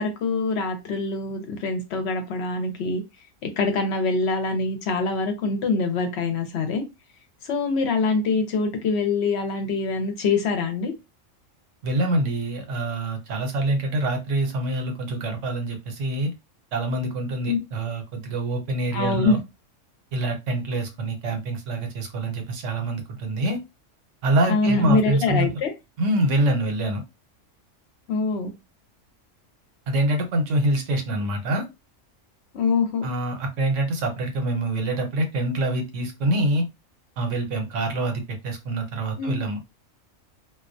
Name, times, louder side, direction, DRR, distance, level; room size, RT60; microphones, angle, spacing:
voice 1, 0.0-3.0 3.4-6.8 7.4-10.9 17.5-17.6 18.9-19.4 24.5-25.7 28.1-28.5 32.5-33.0 39.2-39.4, left 4 dB, 65° left, 0.8 m, -24 dB
voice 2, 11.8-16.3 16.7-19.4 20.1-23.6 24.2-25.5 26.0-27.0 29.9-31.6 33.0-36.6 37.2-39.6, right 1 dB, 75° right, 1.0 m, -25 dB
2.3 x 2.1 x 2.5 m
omnidirectional pair, 1.3 m